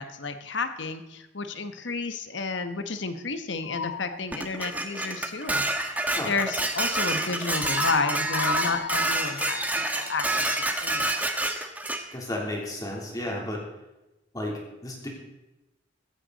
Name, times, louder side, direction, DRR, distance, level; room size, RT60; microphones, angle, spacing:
voice 1, 0.0-5.6 6.3-9.6 9.9-11.2, left 3 dB, 65° left, 9 dB, 1.1 m, -31 dB
sound 1, 3.6-4.2 7.5-10.3, left 6 dB, 90° left, 0.5 m, -34 dB
Dishes pots and pans, 4.3-12.0, right 2 dB, 10° right, 1.1 m, -28 dB
voice 2, 12.1-13.6 14.3-15.1, left 1 dB, 20° left, -2 dB, 3.2 m, -33 dB
16.0 x 14.5 x 4.0 m, 0.99 s
head